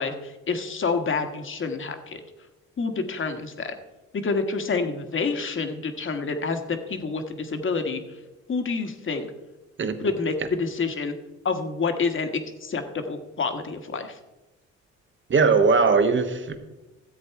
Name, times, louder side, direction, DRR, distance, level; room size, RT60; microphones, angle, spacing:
voice 1, 0.0-2.2 2.8-3.7 4.2-8.0 8.5-9.3 10.0-11.1 11.4-14.2, left 4 dB, 40° left, 7 dB, 1.4 m, -28 dB
voice 2, 15.3-16.6, right 4 dB, 40° right, 8 dB, 1.2 m, -19 dB
13.5 x 7.9 x 4.7 m, 1.1 s
cardioid pair, 90°, 30 cm